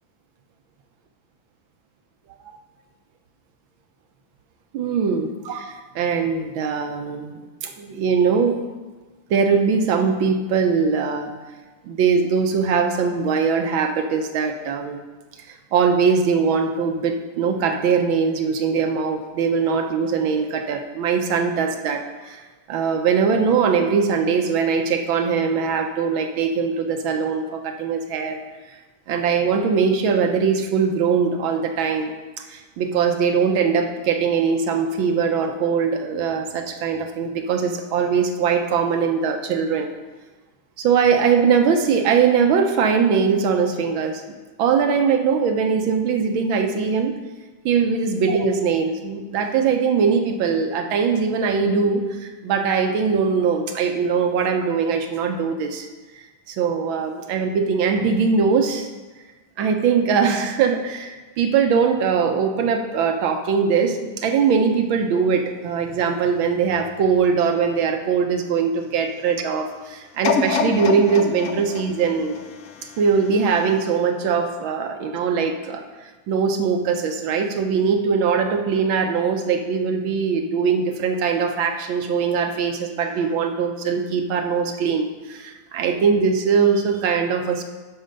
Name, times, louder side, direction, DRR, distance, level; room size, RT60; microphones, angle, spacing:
voice 1, 4.7-8.7 9.3-11.3 11.8-15.0 15.7-22.4 22.7-28.4 29.1-32.1 32.4-39.9 40.8-44.2 44.6-47.1 47.6-55.9 56.1-58.9 59.6-72.4 73.0-87.6, right 6 dB, 75° right, 5 dB, 1.5 m, -21 dB
sound 1, 70.2-73.3 73.9-74.0, left 5 dB, 70° left, 0.7 m, -26 dB
8.8 x 6.2 x 5.2 m, 1.3 s
omnidirectional pair, 2.2 m